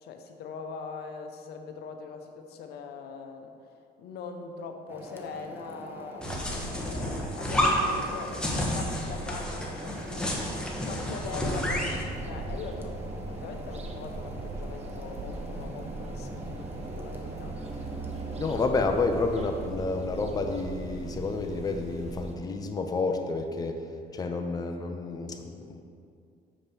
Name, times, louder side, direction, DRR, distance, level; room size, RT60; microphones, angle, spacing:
voice 1, 0.0-3.7 4.0-6.3 6.7-13.0 13.3-17.6 24.3-24.4, left 4 dB, 75° left, 5 dB, 0.8 m, -41 dB
sound 1, 4.9-19.7, right 1 dB, 10° right, 1.0 m, -44 dB
sound 2, 6.2-12.0, equal, 5° left, 1.3 m, -30 dB
sound 3, 11.7-22.3, right 3 dB, 40° right, 0.8 m, -39 dB
voice 2, 18.4-23.9 24.1-25.8, left 3 dB, 20° left, 4 dB, 0.6 m, -30 dB
7.0 x 5.1 x 5.9 m, 2.3 s
cardioid pair, 110°, 17 cm